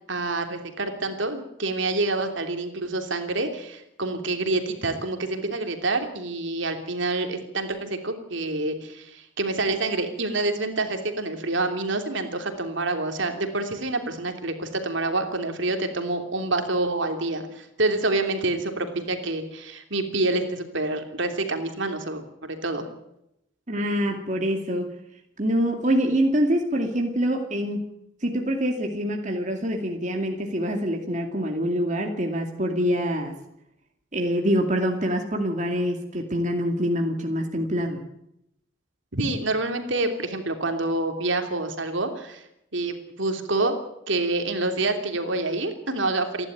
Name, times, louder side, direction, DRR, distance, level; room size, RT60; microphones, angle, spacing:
voice 1, 0.1-22.9 39.1-42.4 42.7-43.8 44.1-46.5, right 2 dB, 65° right, 5 dB, 3.1 m, -27 dB
voice 2, 23.7-24.9 25.4-27.8 28.2-33.3 34.1-38.0, equal, 35° right, 2 dB, 2.4 m, -25 dB
29.0 x 12.0 x 9.3 m, 0.81 s
head